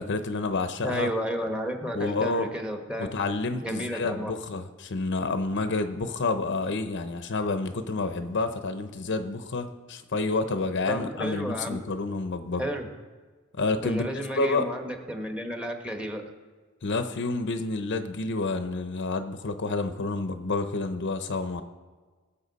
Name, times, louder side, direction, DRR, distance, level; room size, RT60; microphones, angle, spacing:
voice 1, 0.0-1.1 1.9-2.5 3.0-12.6 13.6-14.7 16.8-21.6, left 3 dB, 60° left, 9 dB, 0.7 m, -29 dB
voice 2, 0.8-3.1 3.6-4.3 10.9-11.8 12.6-12.9 13.8-16.2, equal, 5° right, 3 dB, 1.2 m, -32 dB
19.0 x 7.0 x 4.1 m, 1.4 s
head